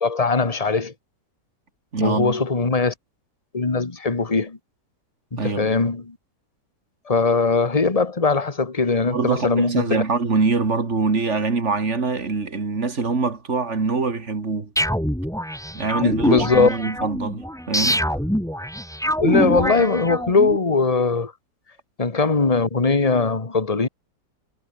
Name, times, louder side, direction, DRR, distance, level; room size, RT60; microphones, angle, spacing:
voice 1, 0.0-0.9 2.0-2.9 3.5-4.6 5.3-6.2 7.1-10.0 16.0-16.7 19.2-21.3 22.0-23.9, left 4 dB, 20° left, 1.8 m, -20 dB
voice 2, 1.9-2.4 5.4-5.8 9.0-14.7 15.7-18.0, right 4 dB, 40° right, 2.7 m, -24 dB
sound 1, 14.8-20.6, equal, ahead, 2.8 m, -24 dB
omnidirectional pair, 1.9 m